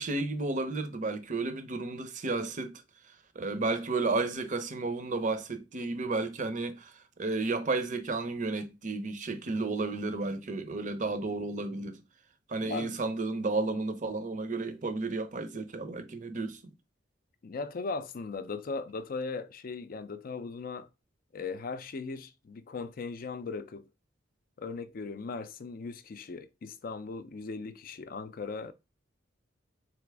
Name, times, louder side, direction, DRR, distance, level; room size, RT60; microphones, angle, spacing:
voice 1, 0.0-2.8 3.4-6.9 7.2-12.0 12.5-16.6, right 3 dB, 40° right, 0.6 m, -32 dB
voice 2, 12.6-13.0 17.4-20.9 21.3-23.9 24.6-28.7, left 4 dB, 50° left, 0.4 m, -38 dB
4.0 x 3.3 x 3.4 m
head